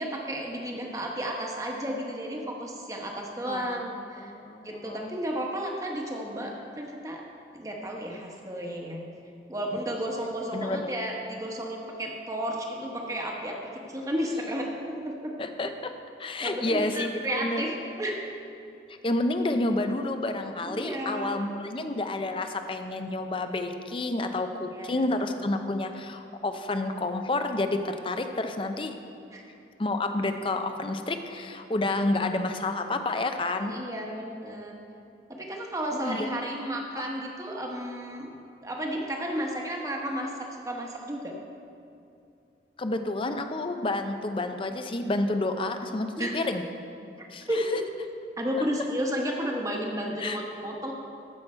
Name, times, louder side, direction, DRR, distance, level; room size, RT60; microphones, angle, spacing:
voice 1, 0.0-4.3 4.6-7.3 7.5-9.1 9.5-15.3 16.4-18.2 20.6-21.4 24.7-25.3 29.3-29.4 33.7-34.8 35.3-38.3 38.6-41.3 46.2-46.4 47.2-47.8 48.4-50.9, equal, 20° right, 0 dB, 1.1 m, -33 dB
voice 2, 3.5-3.8 4.2-5.1 10.5-10.9 15.4-15.9 16.2-17.6 19.0-28.9 29.8-33.7 35.9-36.3 37.0-37.1 42.8-46.6 47.3-47.5 50.2-50.4, left 2 dB, 30° left, 7 dB, 0.5 m, -29 dB
14.5 x 6.0 x 4.4 m, 2.6 s
head